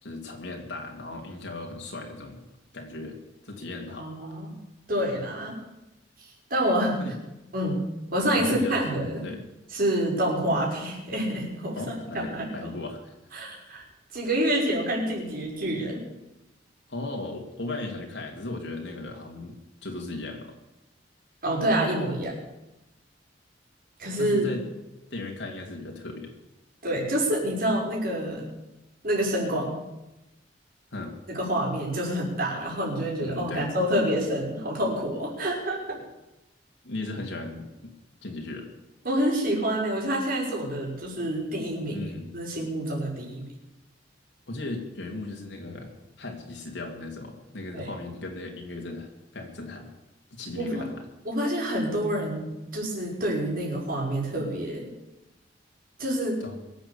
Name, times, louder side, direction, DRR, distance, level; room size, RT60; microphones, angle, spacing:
voice 1, 0.0-2.4 2.7-3.2 3.4-4.1 7.0-7.2 8.3-8.8 9.2-9.4 11.8-13.1 16.9-20.5 24.2-24.6 25.1-26.3 30.9-31.1 33.2-33.7 36.8-37.9 38.2-38.7 41.9-42.3 44.5-49.9 50.3-51.0 56.4-56.6, left 2 dB, 75° left, 1 dB, 2.7 m, -37 dB
voice 2, 4.0-4.5 4.9-5.6 6.2-7.0 7.5-9.2 9.7-12.8 13.3-13.8 14.1-16.0 21.4-22.3 24.0-24.5 26.8-28.5 29.0-29.8 31.3-36.0 39.0-42.0 42.3-43.5 47.7-47.9 50.6-50.8 51.2-54.9 56.0-56.4, right 1 dB, 55° right, -2 dB, 5.7 m, -27 dB
23.5 x 8.0 x 7.1 m, 0.97 s
head